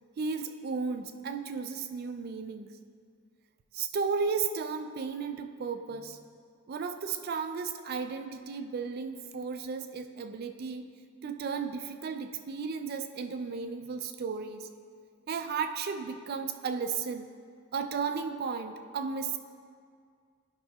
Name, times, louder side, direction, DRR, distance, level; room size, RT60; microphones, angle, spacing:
voice 1, 0.2-2.8 3.7-6.2 6.7-10.9 11.2-14.7 15.3-17.3 17.7-19.4, right 5 dB, 45° right, 8 dB, 0.3 m, -34 dB
12.0 x 5.5 x 2.4 m, 2.1 s
head